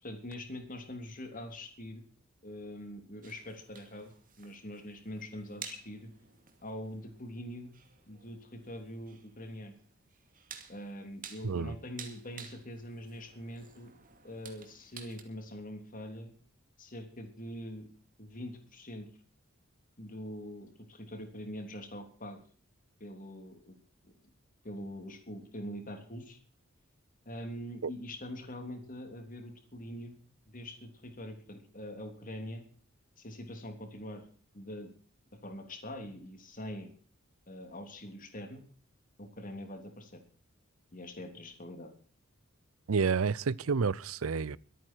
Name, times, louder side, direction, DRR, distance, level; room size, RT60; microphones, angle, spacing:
voice 1, 0.0-2.1 2.4-6.1 6.6-7.7 8.1-9.7 10.7-13.9 14.2-16.3 16.8-17.9 18.2-19.1 20.0-22.4 23.0-23.7 24.0-24.1 24.6-26.4 27.2-30.2 30.5-32.6 33.2-34.3 34.5-34.9 35.4-36.9 37.5-38.6 39.2-40.2 40.9-41.9, equal, 40° left, 3.2 m, -43 dB
sound 1, 3.2-15.2, right 7 dB, 40° right, 2.4 m, -52 dB
voice 2, 11.4-11.8 27.8-27.9 42.9-44.6, right 5 dB, 85° right, 0.6 m, -29 dB
23.5 x 9.3 x 4.6 m
head